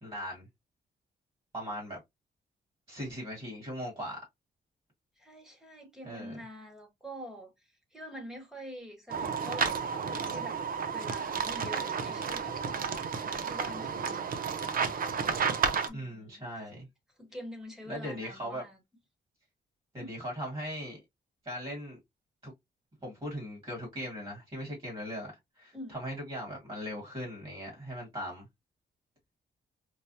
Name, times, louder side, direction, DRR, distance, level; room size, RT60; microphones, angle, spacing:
voice 1, 0.0-0.5 1.5-2.0 2.9-4.2 6.0-6.4 15.9-16.9 17.9-18.6 19.9-21.0 21.4-22.0 22.4-22.5 23.0-28.5, equal, 30° right, 1.9 m, -39 dB
voice 2, 5.2-10.6 10.9-14.4 15.9-16.4 17.2-18.8 19.9-20.2 25.7-26.0, equal, 5° right, 1.2 m, -46 dB
sound 1, 9.1-15.9, right 6 dB, 50° right, 0.6 m, -32 dB
4.7 x 2.1 x 2.7 m
wide cardioid pair, 155°, 19 cm